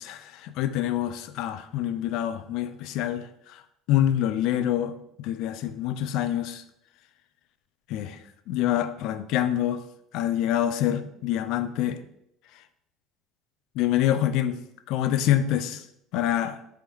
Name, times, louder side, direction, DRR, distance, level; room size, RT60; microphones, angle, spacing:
voice 1, 0.0-3.3 3.9-5.0 5.2-6.6 7.9-8.2 8.5-9.8 10.1-12.0 13.8-14.6 14.9-15.8 16.1-16.6, left 11 dB, 70° left, 11 dB, 0.4 m, -26 dB
4.5 x 3.5 x 3.3 m, 0.76 s
hypercardioid pair, 75°, 0 cm